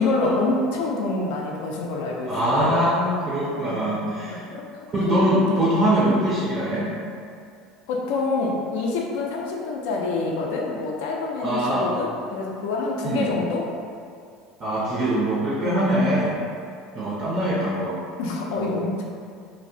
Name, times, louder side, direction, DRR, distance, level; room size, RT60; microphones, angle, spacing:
voice 1, 0.0-2.8 3.6-4.0 4.3-4.6 5.0-5.7 7.9-13.6 15.6-15.9 18.2-19.0, left 3 dB, 80° left, -1 dB, 0.4 m, -27 dB
voice 2, 2.3-4.4 4.9-6.9 11.4-11.9 13.0-13.3 14.6-16.3 16.9-18.0 18.6-18.7, right 1 dB, 25° right, -7 dB, 0.4 m, -23 dB
2.5 x 2.0 x 2.6 m, 2.3 s
cardioid pair, 155°, 0 cm